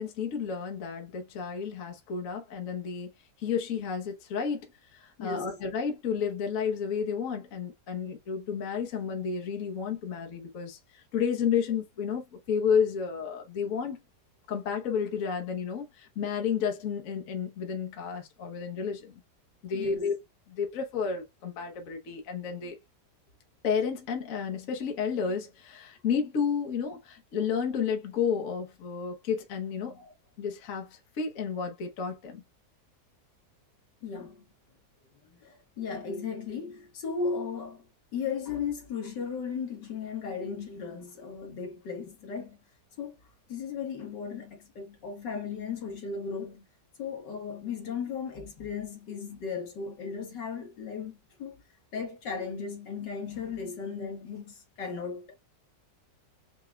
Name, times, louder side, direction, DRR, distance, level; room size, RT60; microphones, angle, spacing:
voice 1, 0.0-3.1 3.4-4.7 4.9-14.0 14.5-19.2 19.6-20.1 20.5-22.8 23.6-30.0 30.4-32.4, left 6 dB, 55° left, 1.3 m, -31 dB
voice 2, 5.2-5.6 19.7-20.1 30.0-30.1 34.0-34.5 35.2-37.8 38.1-42.6 43.0-43.2 43.5-46.7 47.0-51.6 51.9-55.4, left 5 dB, 80° left, 2.1 m, -36 dB
5.8 x 3.7 x 2.3 m
omnidirectional pair, 1.9 m